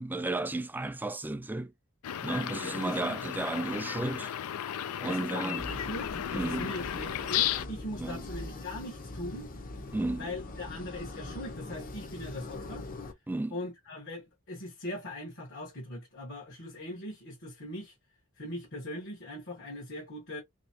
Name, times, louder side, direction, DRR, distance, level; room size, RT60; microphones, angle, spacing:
voice 1, 0.0-1.7 2.2-4.3 5.0-5.7 6.3-6.7 8.0-8.2 9.9-10.3 13.3-13.6, right 2 dB, 10° right, 0.3 m, -33 dB
sound 1, 2.0-7.7, left 10 dB, 90° left, 0.4 m, -34 dB
voice 2, 2.6-3.2 4.2-4.3 5.0-9.5 10.1-12.9 13.5-17.9 18.4-20.4, left 1 dB, 55° left, 1.2 m, -40 dB
sound 2, 5.6-13.1, left 2 dB, 40° left, 0.7 m, -42 dB
3.3 x 2.9 x 2.8 m
head